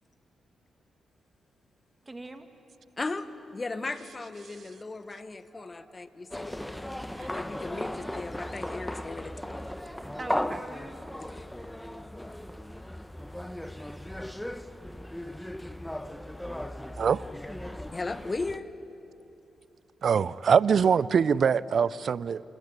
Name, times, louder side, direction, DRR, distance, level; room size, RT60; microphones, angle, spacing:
voice 1, 2.0-2.5 5.5-5.8 7.7-7.8 9.6-10.8, right 2 dB, 25° right, 2.5 m, -42 dB
voice 2, 3.0-6.6 7.2-9.7 11.2-11.5 17.9-18.8, left 3 dB, 35° left, 1.5 m, -37 dB
sound 1, 6.3-18.6, left 1 dB, 10° left, 1.2 m, -37 dB
voice 3, 20.0-22.4, right 6 dB, 60° right, 0.5 m, -23 dB
27.5 x 19.5 x 9.6 m
hypercardioid pair, 40°, 0 cm